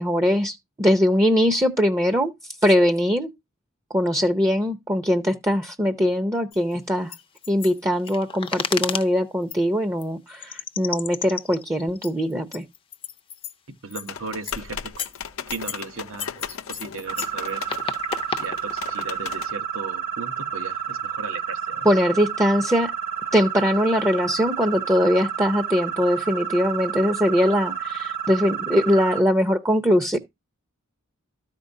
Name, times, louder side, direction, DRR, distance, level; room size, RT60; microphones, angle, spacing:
voice 1, 0.0-3.3 3.9-7.1 7.5-12.6 21.8-22.9 23.3-30.2, equal, 15° right, 0.7 m, -21 dB
sound 1, 6.5-6.6 7.1-9.1 9.5-9.6 10.0-10.1 10.4-13.5 13.9-14.1 14.4-14.6 15.0-15.8 16.2-19.1, left 6 dB, 25° left, 0.5 m, -32 dB
voice 2, 13.8-14.9 15.5-17.7 18.4-21.9, right 4 dB, 70° right, 1.1 m, -36 dB
sound 2, 14.1-19.5, left 7 dB, 70° left, 0.6 m, -37 dB
sound 3, 17.1-29.2, right 8 dB, 45° right, 1.2 m, -30 dB
13.5 x 5.2 x 2.6 m
head